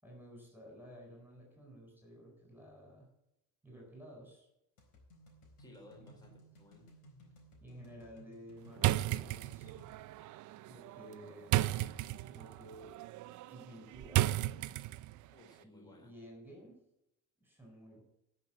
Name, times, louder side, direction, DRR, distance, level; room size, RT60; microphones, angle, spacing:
voice 1, 0.0-3.1 3.6-4.5 7.6-9.8 10.6-11.9 12.2-13.0 13.5-14.3 15.6-16.8 17.4-18.0, equal, 5° right, 0 dB, 4.2 m, -53 dB
sound 1, 4.8-9.9, right 1 dB, 60° left, 4.1 m, -59 dB
voice 2, 5.6-6.9 15.3-16.1, left 1 dB, 10° left, 0 dB, 3.7 m, -58 dB
sound 2, 8.8-15.3, right 16 dB, 55° right, 0.6 m, -35 dB
10.5 x 6.1 x 8.7 m, 0.85 s
supercardioid pair, 95°, 37 cm